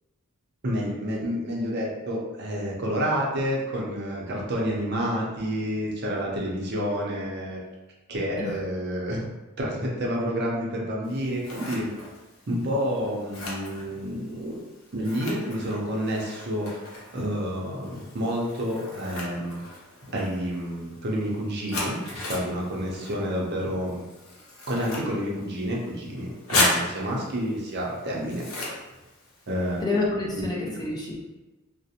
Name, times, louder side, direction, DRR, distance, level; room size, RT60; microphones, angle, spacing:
voice 1, 0.6-7.6 8.1-9.3 9.6-11.9 12.5-14.6 14.9-19.6 20.1-24.0 24.7-28.7 29.5-29.8 30.4-30.5, equal, 50° right, -2 dB, 0.5 m, -29 dB
Scissors, 11.0-29.8, left 2 dB, 75° left, 0.6 m, -35 dB
voice 2, 29.8-31.2, left 2 dB, 20° left, -4 dB, 0.4 m, -28 dB
2.4 x 2.0 x 2.7 m, 1.1 s
head